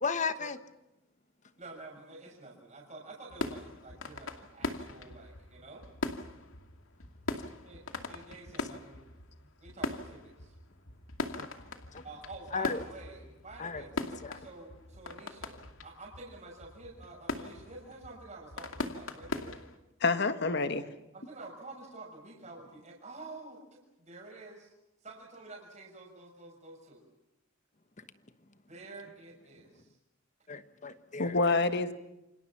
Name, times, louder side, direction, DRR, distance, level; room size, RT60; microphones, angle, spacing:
voice 1, 0.0-0.6 11.4-11.5 11.9-12.0 12.5-12.8 13.6-13.8 14.2-14.4 30.5-31.5, left 5 dB, 35° left, 1.3 m, -35 dB
voice 2, 1.6-5.8 7.6-10.5 12.0-19.6 21.1-24.7 25.0-27.0 28.7-30.0, right 2 dB, 35° right, 6.3 m, -49 dB
sound 1, 3.3-19.8, left 2 dB, 90° left, 2.5 m, -41 dB
voice 3, 20.0-20.9 31.2-31.9, left 3 dB, 55° left, 1.9 m, -27 dB
28.5 x 26.0 x 5.9 m
head